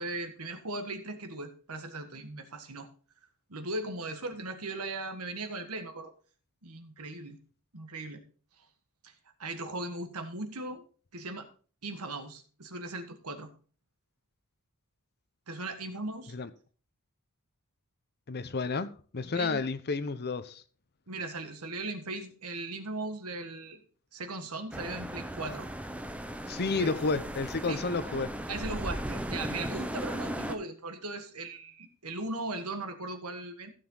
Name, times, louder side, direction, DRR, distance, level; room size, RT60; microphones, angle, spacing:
voice 1, 0.0-2.9 3.5-6.1 6.6-7.4 7.7-8.2 9.0-9.1 9.4-10.8 11.1-11.5 11.8-13.5 15.5-16.3 19.3-19.6 21.1-23.8 24.1-25.7 26.8-26.9 27.7-27.8 28.5-33.7, right 2 dB, 85° right, 1.6 m, -38 dB
voice 2, 18.3-20.6 26.5-28.3, left 4 dB, 50° left, 0.8 m, -31 dB
sound 1, 24.7-30.6, right 1 dB, 5° right, 0.7 m, -37 dB
15.0 x 6.8 x 3.9 m
head